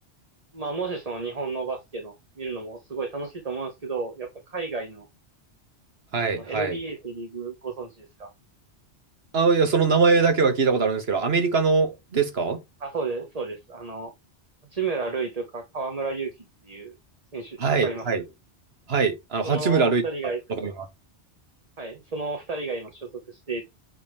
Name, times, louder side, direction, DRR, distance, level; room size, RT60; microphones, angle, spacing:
voice 1, 0.5-5.1 6.3-8.3 12.8-14.1 14.7-16.9 17.3-18.1 19.4-20.4 21.8-23.6, right 4 dB, 35° right, 1.3 m, -32 dB
voice 2, 6.1-6.8 9.3-12.6 17.6-18.2 18.9-20.0 20.5-20.7, right 4 dB, 65° right, 1.7 m, -22 dB
8.6 x 3.7 x 3.3 m
omnidirectional pair, 1.1 m